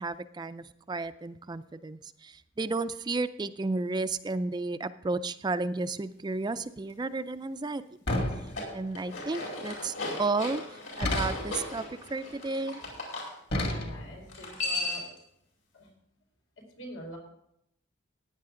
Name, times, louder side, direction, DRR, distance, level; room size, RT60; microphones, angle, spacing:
voice 1, 0.0-7.8 8.7-12.8, right 3 dB, 20° right, 12 dB, 0.4 m, -33 dB
voice 2, 7.6-7.9 13.6-15.0 15.7-15.9 16.6-17.2, equal, 85° left, 0 dB, 4.5 m, -45 dB
sound 1, 8.1-9.0 11.0-11.7 13.5-14.3, left 1 dB, 55° left, 2.2 m, -31 dB
sound 2, 8.3-13.3 14.3-15.2, left 2 dB, 70° left, 5.1 m, -36 dB
15.5 x 10.0 x 3.8 m, 0.76 s
head